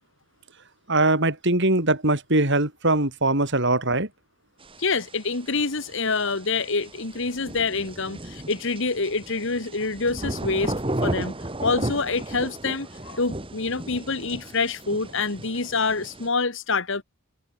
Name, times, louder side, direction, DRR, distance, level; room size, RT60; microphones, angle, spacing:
voice 1, 0.9-4.1, right 2 dB, 55° right, 5.0 m, -21 dB
sound 1, 4.6-16.3, right 1 dB, 25° right, 2.0 m, -35 dB
voice 2, 4.8-10.7 11.0-17.0, left 4 dB, 60° left, 1.8 m, -26 dB
head